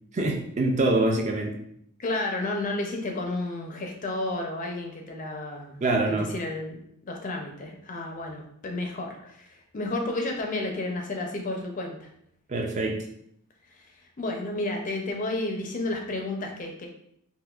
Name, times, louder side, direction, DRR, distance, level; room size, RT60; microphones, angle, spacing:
voice 1, 0.1-1.6 5.8-6.3 12.5-13.0, right 2 dB, 30° right, 2 dB, 0.3 m, -25 dB
voice 2, 2.0-6.8 7.1-12.1 14.2-16.9, left 2 dB, 35° left, 2 dB, 0.4 m, -32 dB
3.6 x 2.5 x 2.3 m, 0.70 s
head